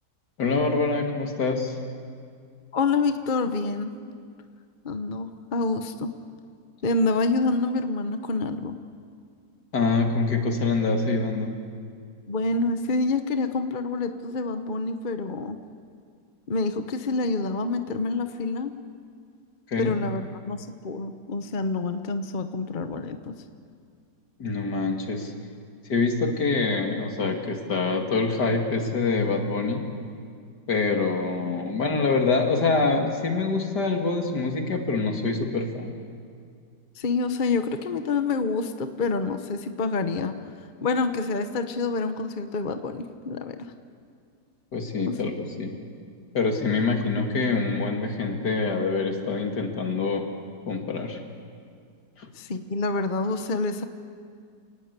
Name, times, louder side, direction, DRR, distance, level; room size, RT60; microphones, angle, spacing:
voice 1, 0.4-1.8 9.7-11.5 19.7-20.0 24.4-25.3 25.9-29.8 30.7-36.0 44.7-45.3 45.6-45.7 46.3-50.3 50.7-51.2 52.2-52.3, left 3 dB, 70° left, 3 dB, 2.8 m, -25 dB
voice 2, 2.7-3.9 4.8-6.1 6.8-8.8 12.3-15.6 16.5-18.7 19.8-23.3 37.0-40.4 40.8-43.7 45.1-45.2 52.3-53.8, left 3 dB, 35° left, 8 dB, 1.0 m, -27 dB
28.0 x 19.5 x 8.3 m, 2.2 s
omnidirectional pair, 1.8 m